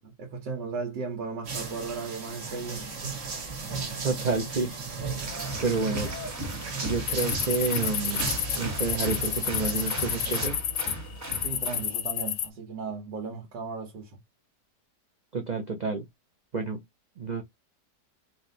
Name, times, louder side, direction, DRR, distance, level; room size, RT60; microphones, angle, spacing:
voice 1, 0.0-3.2 11.4-14.2, right 4 dB, 90° right, 1.7 m, -36 dB
sound 1, 1.4-10.5, right 4 dB, 50° right, 1.5 m, -36 dB
voice 2, 4.0-4.7 5.6-6.1 6.8-8.2 8.5-10.6 15.3-16.0 16.5-16.8 17.2-17.4, right 4 dB, 65° right, 0.4 m, -29 dB
Applause, 5.2-11.9, equal, 10° right, 0.9 m, -37 dB
sound 2, 7.1-11.0 11.3-12.5, left 10 dB, 65° left, 0.8 m, -30 dB
4.7 x 2.9 x 2.6 m
omnidirectional pair, 1.8 m